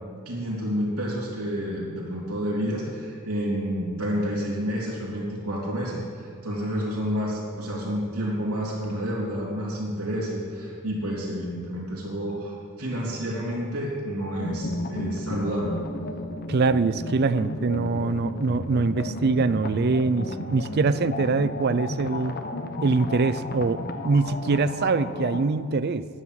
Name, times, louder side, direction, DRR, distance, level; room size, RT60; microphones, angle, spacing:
voice 1, 0.3-15.8, equal, 85° right, -3 dB, 3.3 m, -29 dB
sound 1, 14.4-25.5, left 2 dB, 45° left, 0.9 m, -33 dB
voice 2, 16.5-22.4 22.8-26.1, right 4 dB, 45° right, 14 dB, 0.4 m, -23 dB
11.0 x 9.8 x 7.6 m, 2.1 s
head